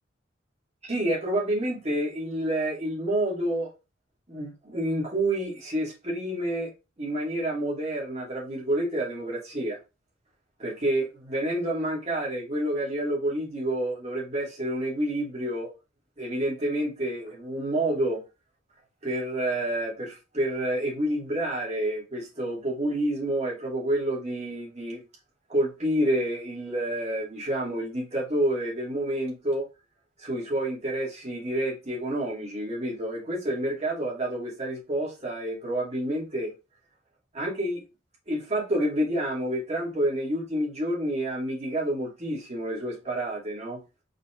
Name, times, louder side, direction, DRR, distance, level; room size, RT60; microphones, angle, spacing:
voice 1, 0.8-3.7 4.3-6.7 7.0-9.8 10.6-15.7 16.2-18.2 19.0-25.0 25.5-29.7 30.2-36.5 37.3-37.8 38.3-43.8, right 1 dB, 35° right, 2.6 m, -29 dB
5.1 x 4.2 x 2.5 m
head